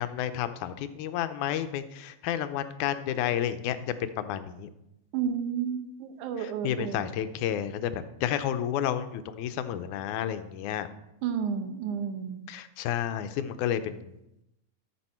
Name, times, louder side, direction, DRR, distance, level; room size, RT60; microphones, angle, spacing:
voice 1, 0.0-3.8 4.2-4.7 6.4-10.9 12.5-14.1, left 10 dB, 90° left, 11 dB, 2.1 m, -31 dB
voice 2, 5.1-7.2 11.2-12.4, right 7 dB, 85° right, 8 dB, 2.4 m, -31 dB
13.5 x 6.1 x 4.3 m, 0.87 s
omnidirectional pair, 3.4 m